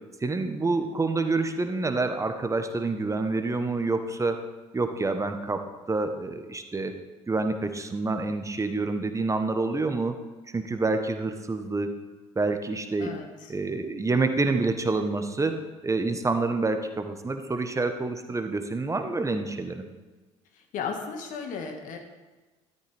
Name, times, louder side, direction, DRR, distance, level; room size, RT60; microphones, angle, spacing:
voice 1, 0.2-4.4 4.7-7.0 7.3-10.2 10.5-11.9 12.3-13.2 13.5-19.9, right 3 dB, 20° right, 7 dB, 1.2 m, -27 dB
voice 2, 13.0-13.5 20.6-22.0, left 5 dB, 60° left, 4 dB, 1.8 m, -35 dB
13.5 x 13.0 x 3.5 m, 1.2 s
hypercardioid pair, 55°, 15 cm